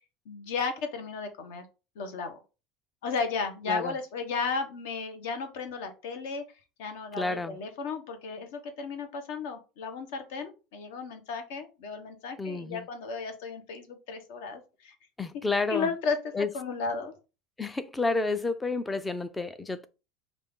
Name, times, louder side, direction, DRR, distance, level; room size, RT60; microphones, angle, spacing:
voice 1, 0.3-1.7 2.0-2.4 3.0-6.4 6.8-14.9 15.7-17.1, left 4 dB, 75° left, 0.9 m, -34 dB
voice 2, 7.2-7.6 12.4-12.9 15.2-15.9 16.3-16.5 17.6-19.9, left 3 dB, 10° left, 0.3 m, -30 dB
5.2 x 2.4 x 3.5 m
cardioid pair, 165°, 0 cm